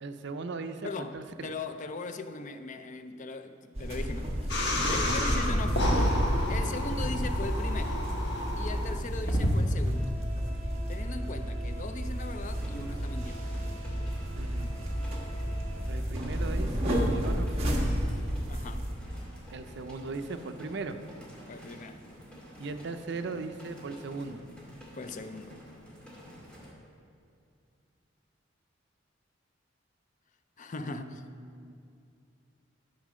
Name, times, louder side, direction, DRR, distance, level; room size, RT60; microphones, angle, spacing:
voice 1, 0.0-1.5 5.0-5.2 6.6-6.7 14.3-14.7 15.9-17.8 19.5-21.0 22.6-24.4 30.8-31.7, right 3 dB, 65° right, 0.6 m, -39 dB
voice 2, 0.8-1.2 1.4-4.6 4.9-5.9 6.5-8.0 8.6-10.2 10.9-13.4 18.5-18.9 21.5-22.0 24.9-25.6 30.6-31.2, left 3 dB, 40° left, 0.5 m, -39 dB
sound 1, 3.7-19.0, equal, 35° right, 1.5 m, -31 dB
sound 2, 4.5-9.6, left 1 dB, 65° left, 1.4 m, -31 dB
sound 3, 12.2-26.7, equal, 5° left, 2.4 m, -50 dB
13.0 x 5.0 x 6.2 m
head